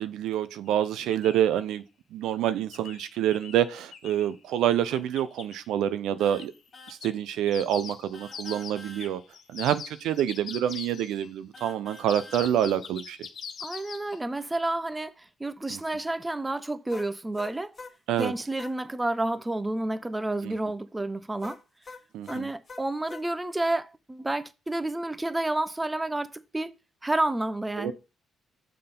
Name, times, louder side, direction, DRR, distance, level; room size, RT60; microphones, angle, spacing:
voice 1, 0.0-1.8 2.1-6.5 6.9-9.2 9.5-13.2 15.7-15.8 18.1-18.3 20.4-20.5 22.1-22.5 27.8-27.9, right 10 dB, 85° right, 0.6 m, -27 dB
sound 1, 0.7-0.8 1.1-1.5 2.7-4.3 4.9-5.5 6.4-6.6 6.9-11.3 11.9-14.2, left 7 dB, 60° left, 1.0 m, -42 dB
sound 2, 6.2-6.5 6.7-7.0 8.1-9.1 11.5-12.4 16.9-18.8 21.4-23.2, left 3 dB, 35° left, 1.5 m, -45 dB
voice 2, 13.6-17.7 18.2-21.6 22.3-26.7 27.0-27.9, right 2 dB, 15° right, 0.6 m, -30 dB
6.7 x 3.8 x 5.3 m
cardioid pair, 90°, 0 cm